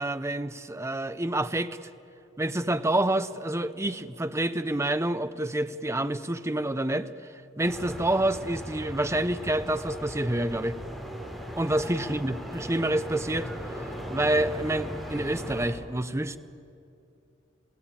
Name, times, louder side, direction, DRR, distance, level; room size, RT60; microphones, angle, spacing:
voice 1, 0.0-1.9 2.4-7.1 7.6-10.8 11.6-13.5 14.1-16.4, right 1 dB, 15° right, 11 dB, 0.7 m, -28 dB
street ambience brazil, 7.6-15.7, equal, ahead, 5.1 m, -38 dB
27.5 x 17.5 x 8.9 m, 2.6 s
head